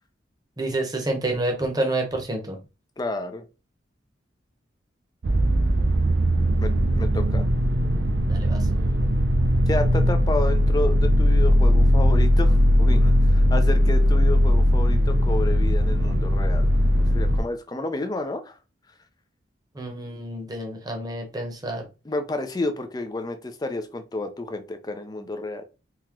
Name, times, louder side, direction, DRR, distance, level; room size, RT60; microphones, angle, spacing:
voice 1, 0.6-2.6 8.3-8.8 19.7-21.9, right 2 dB, 20° right, 3 dB, 0.9 m, -28 dB
voice 2, 3.0-3.4 6.6-7.5 9.7-16.7 17.1-18.6 22.0-25.6, left 2 dB, 20° left, 8 dB, 0.4 m, -30 dB
sound 1, 5.2-17.4, equal, 65° right, 0.6 m, -19 dB
3.6 x 2.9 x 3.0 m, 0.30 s
head